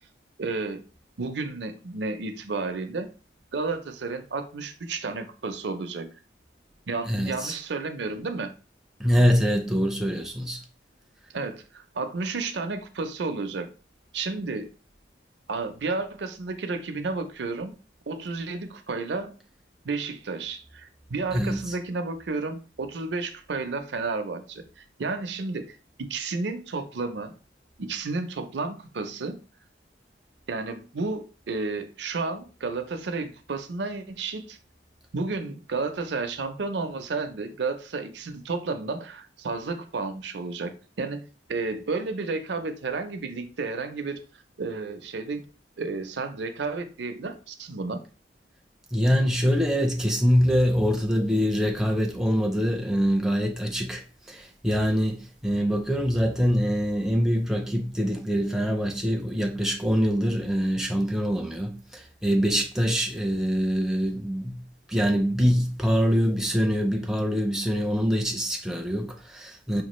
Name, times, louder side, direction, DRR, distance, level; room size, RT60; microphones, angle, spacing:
voice 1, 0.4-0.8 1.2-3.1 3.5-6.1 6.9-8.5 11.3-13.7 14.1-14.7 15.5-17.7 18.1-19.4 19.8-27.3 27.8-29.4 30.5-34.6 35.1-44.2 44.6-45.4 45.8-48.0, right 3 dB, 70° right, 0.5 m, -32 dB
voice 2, 7.1-7.6 9.0-10.6 21.3-21.7 48.9-64.6 64.9-69.8, equal, 5° right, 0.4 m, -24 dB
5.0 x 2.4 x 3.0 m
head